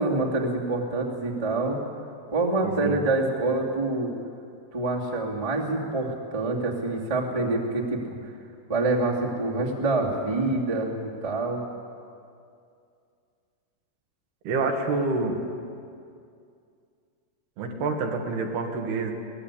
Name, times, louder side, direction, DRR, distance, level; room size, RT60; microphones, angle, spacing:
voice 1, 0.0-1.8 2.3-4.1 4.7-8.3 8.7-11.6, right 2 dB, 10° right, -3 dB, 1.8 m, -26 dB
voice 2, 2.6-3.0 14.5-15.4 17.6-19.1, right 3 dB, 70° right, 2 dB, 3.7 m, -27 dB
23.5 x 18.0 x 8.5 m, 2.4 s
omnidirectional pair, 4.8 m